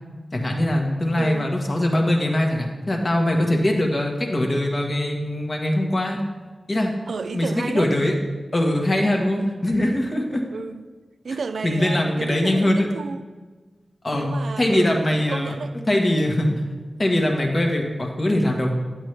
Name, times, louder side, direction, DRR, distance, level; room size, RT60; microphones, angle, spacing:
voice 1, 0.3-6.2 6.7-6.9 7.3-8.1 8.5-10.4 11.6-12.9 14.0-15.5 15.9-16.5 17.0-18.7, left 1 dB, 35° left, 1.4 m, -22 dB
voice 2, 1.2-1.5 7.1-7.9 9.4-9.6 10.5-10.9 11.2-13.2 14.1-15.7, right 4 dB, 75° right, 0.4 m, -32 dB
10.5 x 7.5 x 3.3 m
wide cardioid pair, 80°, 0 cm